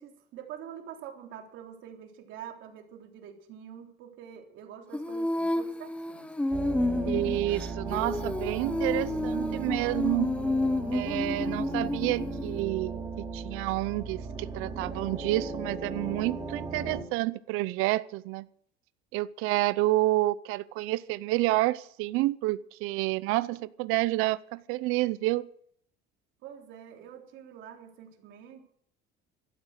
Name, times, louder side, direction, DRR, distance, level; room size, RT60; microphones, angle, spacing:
voice 1, 0.0-6.3 26.4-28.6, right 9 dB, 65° right, 3 dB, 3.5 m, -46 dB
Female singing, 4.9-12.6, left 1 dB, 5° left, 0.7 m, -30 dB
sound 1, 6.5-17.0, right 4 dB, 15° right, 3.0 m, -37 dB
voice 2, 7.1-10.3 10.9-13.0 13.3-18.5 19.1-25.5, right 18 dB, 90° right, 17 dB, 0.7 m, -29 dB
15.0 x 12.5 x 6.6 m, 0.65 s
cardioid pair, 170°, 21 cm